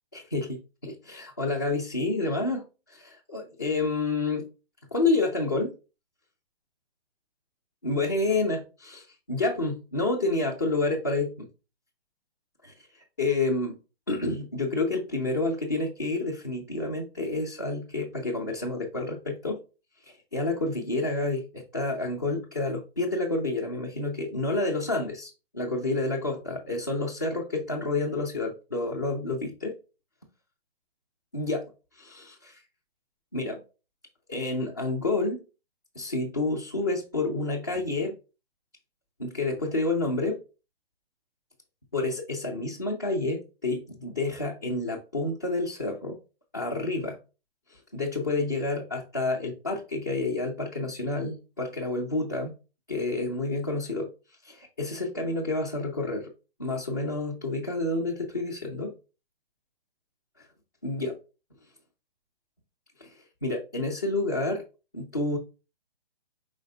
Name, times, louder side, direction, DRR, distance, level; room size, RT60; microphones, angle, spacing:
voice 1, 0.1-4.5 4.9-5.7 7.8-11.5 12.6-13.8 14.1-19.6 20.0-29.7 31.3-32.6 33.3-33.6 34.3-35.4 35.9-38.2 39.2-40.4 41.9-46.2 46.5-47.2 47.7-52.5 52.9-54.1 54.4-56.3 56.6-58.9 60.4-60.5 60.8-61.2 63.0-64.6 64.9-65.4, left 2 dB, 20° left, -4 dB, 0.4 m, -29 dB
4.9 x 3.9 x 2.7 m, 0.31 s
hypercardioid pair, 160°, 31 cm